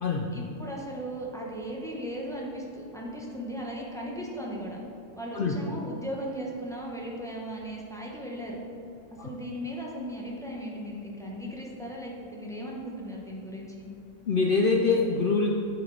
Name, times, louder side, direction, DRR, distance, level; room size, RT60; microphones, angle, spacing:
voice 1, 0.3-4.8 5.2-8.6 9.2-13.9, equal, 5° left, -3 dB, 0.7 m, -37 dB
voice 2, 14.3-15.5, left 4 dB, 65° left, -1 dB, 0.5 m, -24 dB
7.9 x 5.9 x 3.3 m, 2.7 s
omnidirectional pair, 1.5 m